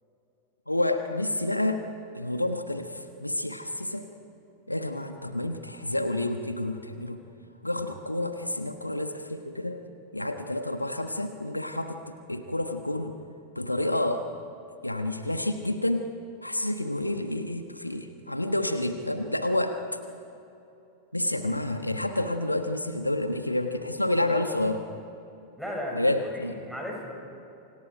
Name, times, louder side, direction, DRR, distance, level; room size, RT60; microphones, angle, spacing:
voice 1, 0.7-1.9 2.1-4.1 4.7-7.2 7.6-9.8 10.1-13.2 13.5-14.2 14.8-16.1 16.4-19.8 21.1-24.8 25.9-26.6, left 1 dB, 85° left, 7 dB, 1.3 m, -29 dB
voice 2, 25.6-27.1, equal, ahead, -1 dB, 7.3 m, -36 dB
29.0 x 26.5 x 5.1 m, 2.8 s
figure-of-eight pair, 90°, 0 cm